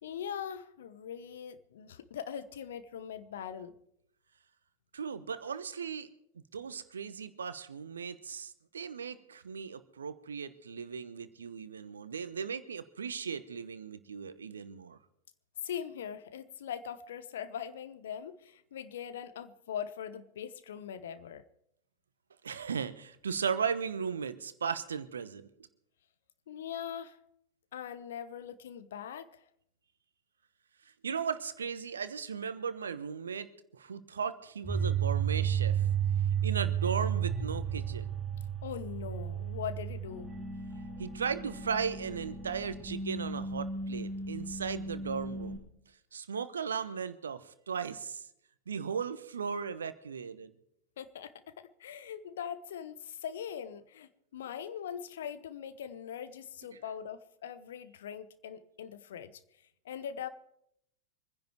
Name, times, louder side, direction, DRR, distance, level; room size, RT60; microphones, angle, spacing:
voice 1, 0.0-3.8 15.6-21.5 26.5-27.2 27.7-29.4 38.6-40.3 51.0-59.4 59.8-60.3, left 8 dB, 60° left, 13 dB, 0.9 m, -41 dB
voice 2, 4.9-6.1 6.5-15.0 22.4-25.5 31.0-35.9 36.4-38.1 41.0-45.7 46.1-48.3 48.7-50.5, right 6 dB, 70° right, 14 dB, 1.0 m, -37 dB
sound 1, 34.6-45.6, right 7 dB, 5° left, 4.2 m, -33 dB
25.0 x 10.5 x 4.6 m, 0.74 s
figure-of-eight pair, 90°, 0 cm